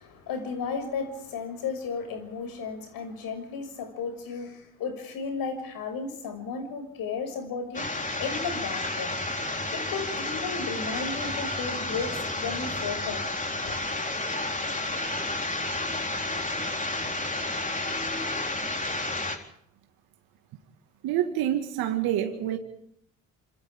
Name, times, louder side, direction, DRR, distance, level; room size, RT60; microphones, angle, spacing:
voice 1, 0.0-13.2 13.6-13.8, left 5 dB, 65° left, 8 dB, 6.4 m, -34 dB
sound 1, 7.7-19.4, left 2 dB, 20° left, 4.0 m, -31 dB
voice 2, 21.0-22.6, right 11 dB, 65° right, 5 dB, 2.0 m, -27 dB
29.5 x 27.0 x 3.7 m, 0.67 s
hypercardioid pair, 55°, 38 cm